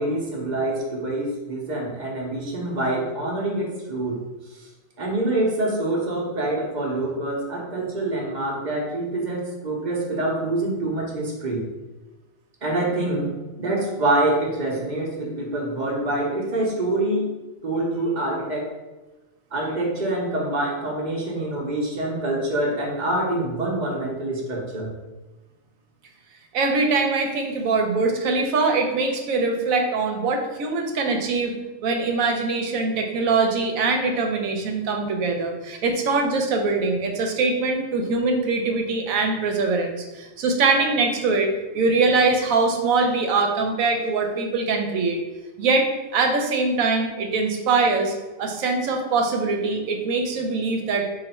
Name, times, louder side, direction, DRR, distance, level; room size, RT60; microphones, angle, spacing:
voice 1, 0.0-4.2 5.0-11.7 12.6-13.3 13.6-17.3 17.6-18.7 19.5-24.9, right 2 dB, 40° right, -2 dB, 0.7 m, -25 dB
voice 2, 26.5-31.5 31.8-41.5 41.7-45.2 45.6-51.1, right 3 dB, 80° right, 3 dB, 1.0 m, -22 dB
3.2 x 2.5 x 4.1 m, 1.1 s
omnidirectional pair, 1.4 m